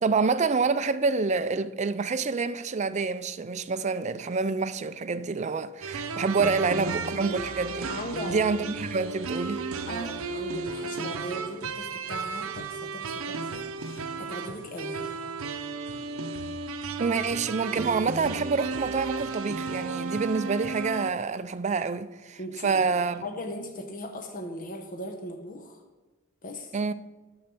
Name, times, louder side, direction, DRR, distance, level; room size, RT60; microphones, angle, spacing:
voice 1, 0.0-7.9 8.2-9.6 17.0-23.2 26.7-26.9, right 4 dB, 35° right, 0.4 m, -27 dB
sound 1, 5.8-21.1, right 4 dB, 75° right, 0.7 m, -34 dB
voice 2, 7.9-8.4 9.9-15.2 22.4-25.8 26.4-26.7, equal, 40° left, 0.9 m, -38 dB
10.5 x 7.6 x 6.1 m
head